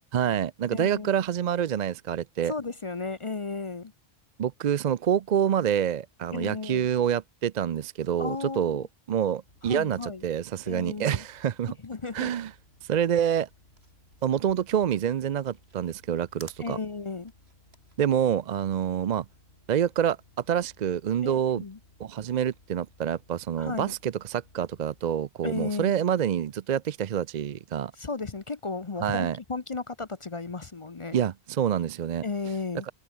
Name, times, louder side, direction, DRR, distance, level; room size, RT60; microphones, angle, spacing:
voice 1, 0.1-2.5 4.4-11.7 12.1-12.5 12.8-13.5 14.2-16.8 18.0-19.3 19.7-20.2 20.5-21.6 22.0-27.9 29.0-29.4 31.1-32.2, right 9 dB, 55° right, 0.6 m, -27 dB
voice 2, 0.7-1.1 2.4-3.9 6.3-6.9 8.2-8.9 9.6-10.2 10.7-11.2 11.8-12.3 16.6-17.3 21.2-21.8 23.6-23.9 25.4-25.9 28.0-31.2 32.2-32.9, left 4 dB, 35° left, 0.8 m, -34 dB
sound 1, 9.4-25.0, left 1 dB, 85° left, 6.4 m, -60 dB
sound 2, 13.4-19.8, right 2 dB, 85° right, 4.4 m, -55 dB
omnidirectional pair, 1.0 m